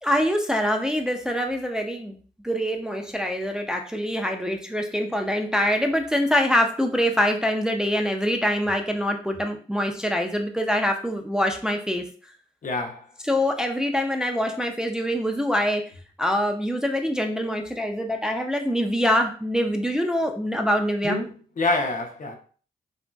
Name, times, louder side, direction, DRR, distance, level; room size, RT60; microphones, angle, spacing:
voice 1, 0.0-2.2 2.4-12.0 13.2-15.8 16.2-21.2, equal, 5° right, 0.4 m, -24 dB
voice 2, 12.6-13.0 21.0-22.3, left 2 dB, 55° left, 0.6 m, -27 dB
2.8 x 2.6 x 2.2 m
cardioid pair, 60°, 16 cm